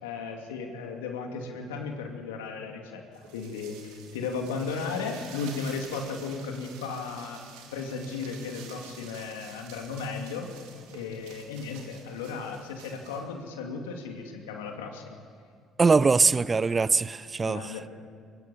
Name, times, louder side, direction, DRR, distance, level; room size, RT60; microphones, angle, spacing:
voice 1, 0.0-7.4 7.7-10.5 10.9-15.0 17.4-17.9, left 5 dB, 90° left, 2.6 m, -35 dB
sound 1, 3.1-13.2, right 7 dB, 80° right, 3.2 m, -49 dB
voice 2, 15.8-17.8, right 4 dB, 30° right, 0.7 m, -22 dB
23.0 x 21.5 x 7.7 m
hypercardioid pair, 65°, 0 cm